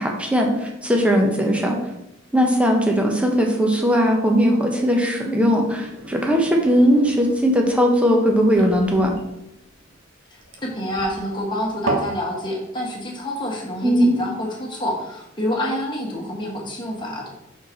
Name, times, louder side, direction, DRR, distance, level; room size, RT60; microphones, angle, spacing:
voice 1, 0.0-1.8 2.3-9.1 13.8-14.2, equal, 5° right, 1 dB, 1.0 m, -19 dB
sound 1, 5.7-12.2, right 2 dB, 80° right, 1.2 m, -33 dB
voice 2, 10.3-17.3, left 1 dB, 25° left, -2 dB, 1.5 m, -27 dB
5.6 x 4.5 x 4.5 m, 0.84 s
head